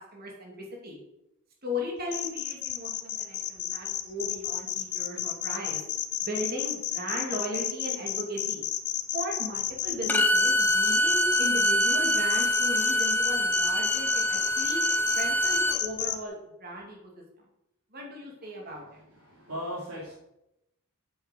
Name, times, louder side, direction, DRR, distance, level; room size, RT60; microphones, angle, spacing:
voice 1, 0.1-0.5 0.8-1.0 1.6-5.8 6.2-8.6 9.1-14.8 15.1-16.3 16.6-17.0 17.9-19.0, left 1 dB, 45° right, -1 dB, 2.5 m, -36 dB
sound 1, 2.1-16.1, left 12 dB, 50° left, 1.0 m, -31 dB
Bowed string instrument, 10.1-15.8, equal, 10° left, 0.6 m, -25 dB
voice 2, 19.1-20.2, equal, 75° right, -5 dB, 2.9 m, -38 dB
7.7 x 6.6 x 7.8 m, 0.87 s
head